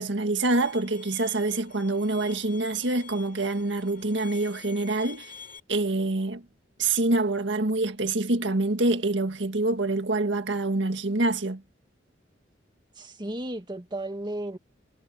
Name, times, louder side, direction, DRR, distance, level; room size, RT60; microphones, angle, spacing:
voice 1, 0.0-5.3 5.7-6.4 6.8-11.6, right 2 dB, 75° right, 1.8 m, -26 dB
Bowed string instrument, 0.6-5.6, left 7 dB, 50° left, 5.8 m, -47 dB
voice 2, 13.0-14.6, right 1 dB, 25° right, 1.9 m, -34 dB
head